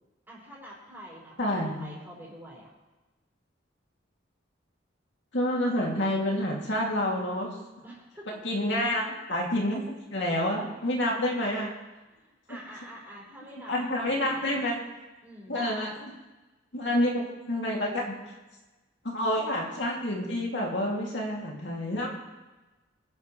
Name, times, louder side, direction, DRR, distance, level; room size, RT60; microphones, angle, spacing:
voice 1, 0.3-2.7 7.8-8.4 11.1-11.4 12.1-14.6 15.2-16.0 19.3-19.7, equal, 10° right, -6 dB, 5.4 m, -47 dB
voice 2, 1.4-1.9 5.3-7.5 8.3-11.7 13.7-14.8 15.5-16.1 16.7-17.2 17.5-18.2 19.0-22.1, left 1 dB, 65° left, -2 dB, 2.6 m, -28 dB
23.5 x 10.5 x 3.2 m, 1.1 s
head